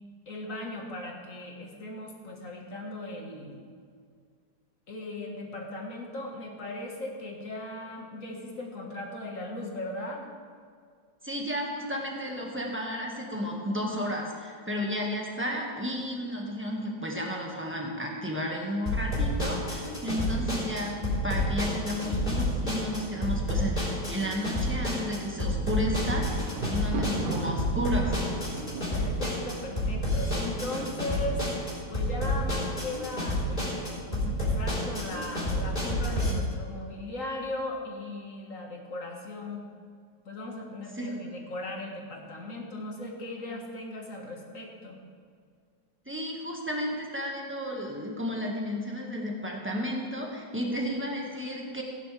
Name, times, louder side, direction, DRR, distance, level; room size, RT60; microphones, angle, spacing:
voice 1, 0.3-3.6 4.9-10.3 28.9-31.5 31.9-39.6 40.3-45.0, left 2 dB, 45° left, 0 dB, 2.0 m, -38 dB
voice 2, 11.2-28.1 41.0-41.1 46.0-51.8, equal, 5° right, -1 dB, 1.5 m, -33 dB
sound 1, 18.9-36.3, left 1 dB, 25° left, 4.0 m, -29 dB
Thunder, 25.9-30.7 31.4-31.9 32.2-32.3, right 3 dB, 70° right, 1.7 m, -37 dB
16.5 x 10.0 x 3.4 m, 2.1 s
omnidirectional pair, 2.0 m